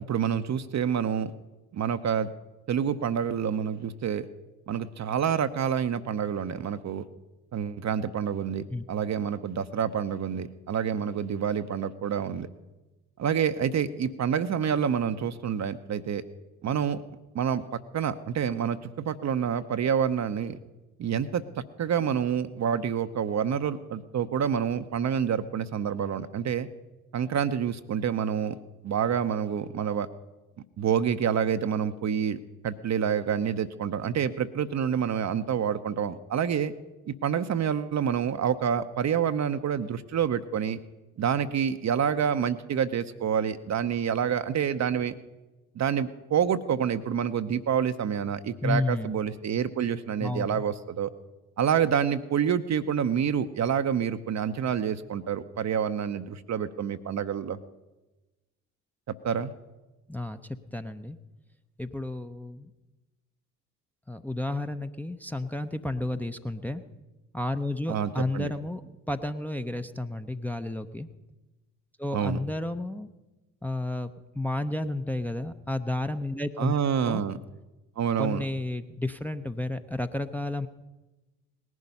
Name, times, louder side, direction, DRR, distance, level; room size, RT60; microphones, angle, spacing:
voice 1, 0.1-1.3 1.7-2.3 2.7-4.3 4.7-7.0 7.5-12.5 13.2-16.2 16.6-17.0 17.3-20.6 21.0-21.4 21.8-26.7 27.1-28.5 28.8-30.1 30.8-36.7 37.1-40.8 41.2-45.1 45.8-51.1 51.6-57.6 59.2-59.5 67.9-68.5 72.1-72.4 76.6-77.4 78.0-78.4, right 8 dB, 40° right, 10 dB, 0.8 m, -27 dB
voice 2, 48.6-49.1 50.2-50.6 60.1-61.2 61.8-62.7 64.1-66.8 67.3-68.8 69.1-71.1 72.0-73.1 73.6-76.7 77.0-77.2 78.2-80.7, left 2 dB, 5° left, 7 dB, 0.7 m, -32 dB
19.0 x 11.0 x 5.5 m, 1.1 s
figure-of-eight pair, 45°, 45 cm